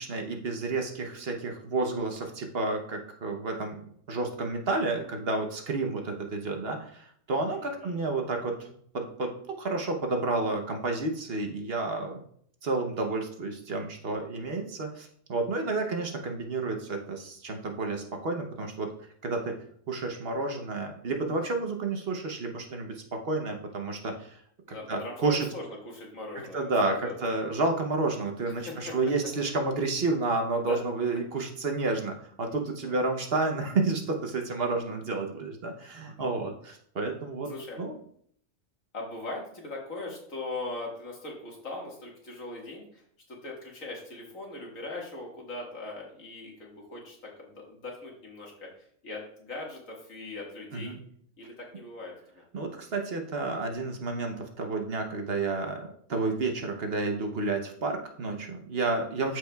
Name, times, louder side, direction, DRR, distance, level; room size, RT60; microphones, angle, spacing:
voice 1, 0.0-3.8 4.1-8.5 8.9-12.2 12.6-18.9 19.2-19.6 19.9-24.4 24.9-25.5 26.5-37.5 37.8-38.0 50.7-51.0 52.5-59.4, right 3 dB, 50° right, 3 dB, 1.0 m, -30 dB
voice 2, 7.5-8.1 24.7-27.2 28.7-29.0 30.6-30.8 32.8-33.0 36.0-36.3 37.5-37.8 38.9-43.0 43.3-48.7 49.0-50.9 51.4-52.4 59.2-59.3, left 2 dB, 80° left, -2 dB, 2.2 m, -40 dB
13.0 x 4.7 x 2.3 m, 0.64 s
omnidirectional pair, 1.4 m